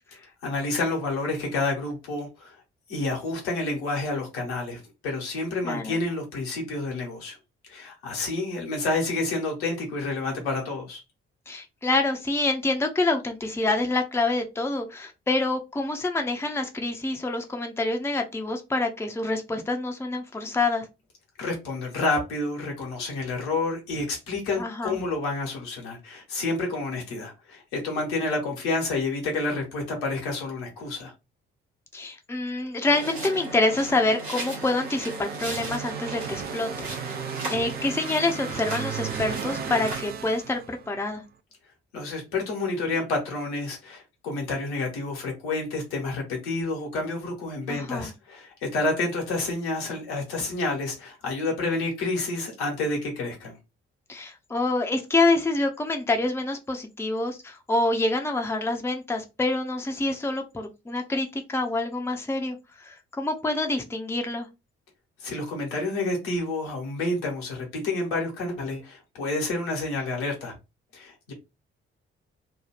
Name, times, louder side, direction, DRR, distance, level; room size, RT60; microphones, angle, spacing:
voice 1, 0.4-2.6 2.9-7.4 7.7-11.0 21.4-31.1 41.9-53.6 65.2-70.5 70.9-71.3, left 2 dB, 70° left, 1.1 m, -29 dB
voice 2, 5.6-6.0 11.5-20.9 24.6-25.0 31.9-37.2 37.5-41.2 47.7-48.1 54.1-64.5, left 2 dB, 10° left, 0.6 m, -27 dB
sound 1, 32.8-40.0, right 2 dB, 85° right, 1.0 m, -36 dB
sound 2, 34.2-41.1, right 8 dB, 30° right, 0.4 m, -36 dB
2.8 x 2.3 x 3.3 m
figure-of-eight pair, 40°, 31 cm